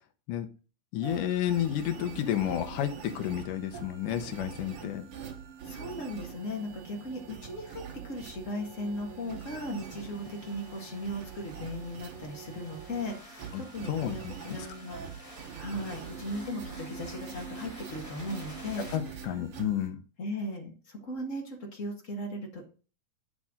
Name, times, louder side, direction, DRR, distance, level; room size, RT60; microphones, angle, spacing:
voice 1, 0.9-5.1 13.5-14.3 18.9-20.0, left 11 dB, 80° left, 8 dB, 2.4 m, -31 dB
sound 1, 1.0-19.9, right 6 dB, 55° right, 1.7 m, -44 dB
voice 2, 5.6-15.2 15.6-18.8 20.2-22.7, left 1 dB, 35° left, 1 dB, 1.4 m, -37 dB
sound 2, 8.5-18.9, left 1 dB, 15° left, 1.5 m, -52 dB
8.4 x 6.2 x 3.7 m, 0.36 s
omnidirectional pair, 3.7 m